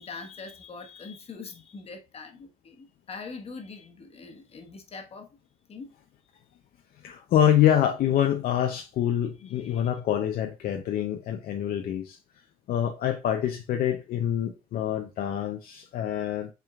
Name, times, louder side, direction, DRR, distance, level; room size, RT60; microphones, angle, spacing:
voice 1, 0.0-5.3 5.7-6.0 9.5-9.8, left 4 dB, 35° left, 1.2 m, -43 dB
voice 2, 7.0-12.2 12.7-16.5, left 10 dB, 60° left, 0.6 m, -26 dB
5.7 x 3.7 x 2.3 m
cardioid pair, 110°, 17 cm